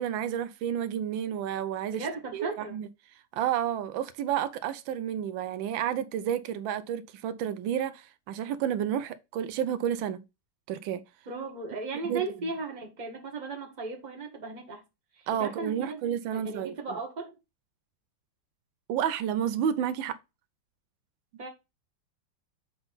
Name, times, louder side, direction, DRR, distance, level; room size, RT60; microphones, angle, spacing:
voice 1, 0.0-2.1 2.3-2.9 3.3-10.2 10.7-11.0 12.0-12.2 15.3-17.0 18.9-20.2, right 9 dB, 90° right, 1.4 m, -30 dB
voice 2, 1.9-2.8 11.3-14.8 15.3-16.0 16.3-17.3 21.4-21.5, right 3 dB, 25° right, 1.5 m, -36 dB
6.9 x 3.9 x 3.9 m
omnidirectional pair, 2.0 m